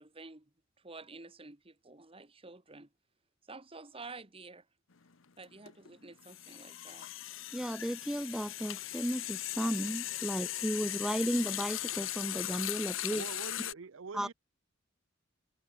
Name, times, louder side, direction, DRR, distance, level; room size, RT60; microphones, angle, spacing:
voice 1, 0.0-2.9 3.4-4.7 5.4-7.1, right 3 dB, 30° right, 1.9 m, -50 dB
sound 1, 4.9-5.1 5.4-13.7, left 14 dB, 85° left, 0.9 m, -38 dB
voice 2, 7.5-13.2 14.1-14.3, equal, 5° right, 0.3 m, -34 dB
voice 3, 13.1-14.3, right 4 dB, 85° right, 0.7 m, -44 dB
head